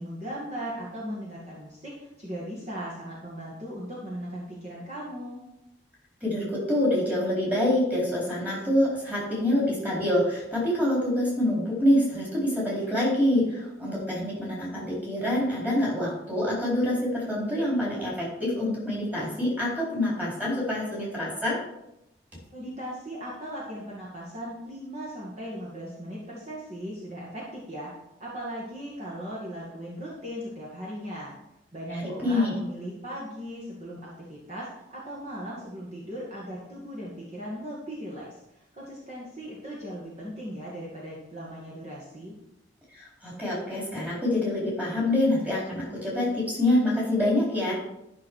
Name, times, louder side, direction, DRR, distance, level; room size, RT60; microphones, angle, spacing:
voice 1, 0.0-5.4 22.5-27.9 28.2-31.3 31.7-42.4, equal, 35° right, -6 dB, 2.1 m, -38 dB
voice 2, 6.2-21.6 31.9-32.5 42.9-47.7, left 1 dB, 10° right, -5 dB, 4.3 m, -26 dB
12.5 x 6.3 x 4.8 m, 0.85 s
head